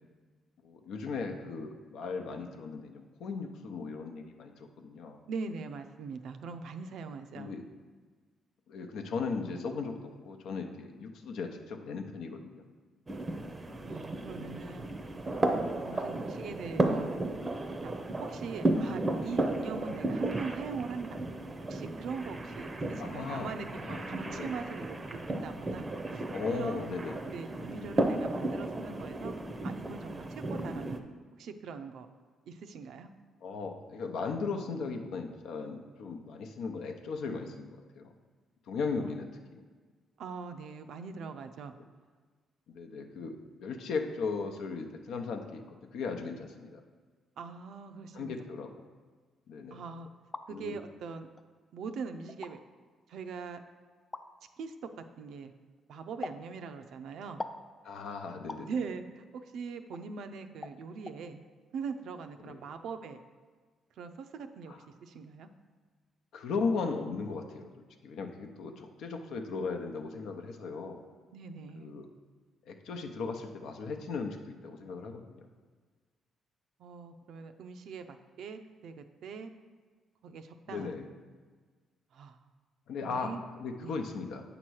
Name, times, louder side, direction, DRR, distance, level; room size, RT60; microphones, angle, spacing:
voice 1, 0.6-5.2 7.4-7.6 8.7-12.6 15.9-16.0 16.7-16.9 23.0-23.5 23.8-24.5 26.3-27.3 33.4-38.1 38.7-39.6 42.7-46.8 48.1-48.8 49.5-49.8 50.5-50.8 57.8-58.7 62.4-62.6 64.7-64.8 66.3-67.7 68.0-71.0 71.7-72.1 72.7-75.5 80.7-81.1 82.9-84.4, left 4 dB, 80° left, 5 dB, 0.7 m, -37 dB
voice 2, 5.3-7.5 13.8-14.9 15.8-17.1 17.8-17.9 18.2-21.2 21.7-25.0 25.3-25.9 26.1-26.2 26.5-27.0 27.3-29.4 29.6-31.0 31.4-32.1 32.5-33.1 40.2-41.7 47.4-48.4 49.7-50.1 50.5-51.3 51.7-52.6 53.1-53.6 54.6-55.5 55.9-57.4 58.6-59.2 59.5-61.4 61.7-63.2 64.0-65.5 71.3-71.9 76.8-79.5 80.2-80.9 82.1-82.4 83.0-83.4 83.8-84.0, right 5 dB, 75° right, 7 dB, 0.5 m, -41 dB
sound 1, 13.1-31.0, right 2 dB, 25° right, 0.6 m, -34 dB
sound 2, 50.1-50.5 51.4-51.5 52.3-52.5 54.1-54.3 56.2-56.4 57.4-57.6 58.5-58.7 59.9-60.0 60.6-60.8 61.1-61.2, left 2 dB, 25° left, 0.4 m, -40 dB
8.1 x 3.0 x 6.3 m, 1.5 s
cardioid pair, 90°, 0 cm